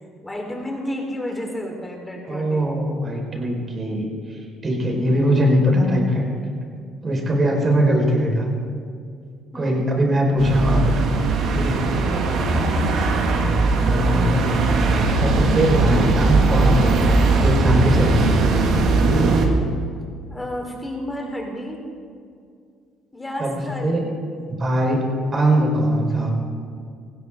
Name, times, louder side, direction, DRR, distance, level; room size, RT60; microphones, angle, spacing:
voice 1, 0.2-2.7 5.2-5.4 9.5-9.8 12.2-12.5 20.3-21.8 23.1-24.1, left 1 dB, 15° left, 1 dB, 4.0 m, -31 dB
voice 2, 2.3-6.2 7.0-8.5 9.5-11.1 11.5-11.8 13.8-14.5 15.1-17.1 17.4-18.4 23.4-24.1 24.5-26.3, equal, 35° right, 0 dB, 4.8 m, -21 dB
sound 1, 10.4-19.5, right 3 dB, 65° right, 2.1 m, -19 dB
18.5 x 16.0 x 3.8 m, 2.3 s
supercardioid pair, 80°, 0 cm